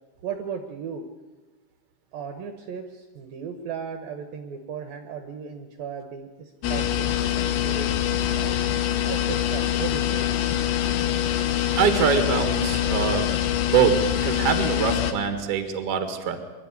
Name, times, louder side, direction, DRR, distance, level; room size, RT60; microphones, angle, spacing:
voice 1, 0.2-1.1 2.1-8.6 9.0-10.3, right 6 dB, 65° right, 7 dB, 2.4 m, -36 dB
sound 1, 6.6-15.1, left 11 dB, 75° left, 3.1 m, -24 dB
voice 2, 11.7-13.3 13.7-16.4, right 7 dB, 50° right, 7 dB, 1.8 m, -23 dB
23.5 x 12.0 x 9.6 m, 1.2 s
omnidirectional pair, 5.2 m